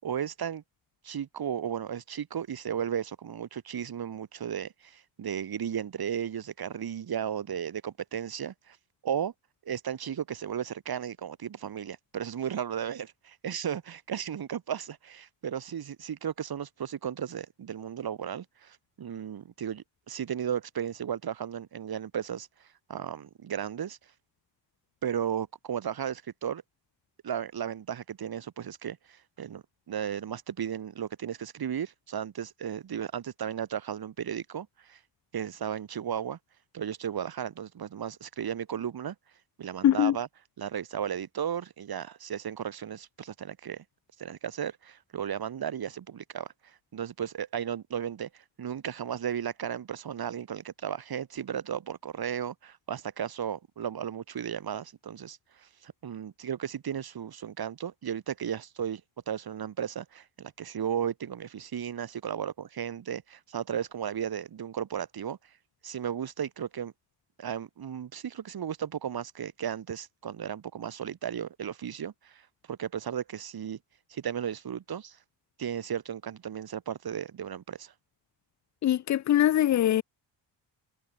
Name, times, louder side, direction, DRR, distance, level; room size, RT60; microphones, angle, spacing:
voice 1, 0.0-0.6 1.0-8.8 9.0-9.3 9.7-22.5 22.9-24.0 25.0-26.6 27.2-35.0 35.3-36.4 36.7-39.2 39.6-40.3 40.6-43.8 44.2-59.0 59.3-65.4 65.8-66.9 67.4-72.4 72.7-73.8 74.1-75.2 75.6-77.9, right 8 dB, 50° right, 7.0 m, -35 dB
voice 2, 39.8-40.2 78.8-80.0, left 12 dB, 40° left, 0.4 m, -22 dB
cardioid pair, 155°, 46 cm